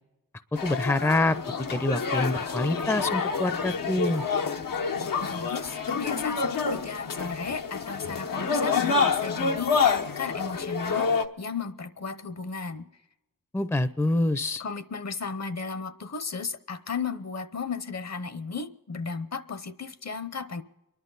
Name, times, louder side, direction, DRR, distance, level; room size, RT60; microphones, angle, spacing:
sound 1, 0.6-11.3, left 5 dB, 80° left, 1.1 m, -28 dB
voice 1, 0.6-1.4 1.7-4.2 13.5-14.6, left 2 dB, 10° left, 13 dB, 0.6 m, -26 dB
voice 2, 5.2-12.9 14.6-20.6, left 5 dB, 50° left, 12 dB, 0.9 m, -35 dB
29.5 x 11.5 x 4.0 m, 0.99 s
wide cardioid pair, 80°, 33 cm